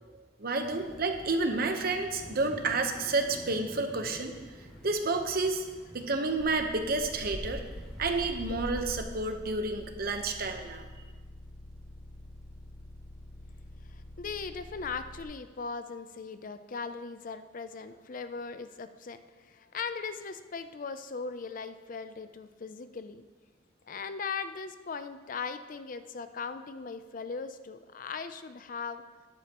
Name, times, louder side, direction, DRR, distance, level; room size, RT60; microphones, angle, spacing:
voice 1, 0.1-4.4 4.8-5.7 5.9-7.6 8.0-10.8, right 3 dB, 50° right, 6 dB, 1.0 m, -30 dB
sound 1, 0.6-9.0, equal, ahead, 2.4 m, -45 dB
sound 2, 6.4-15.2, left 1 dB, 25° left, 3.0 m, -48 dB
voice 2, 13.9-23.2 23.9-29.0, left 5 dB, 45° left, 11 dB, 0.5 m, -39 dB
14.0 x 10.5 x 3.0 m, 1.4 s
head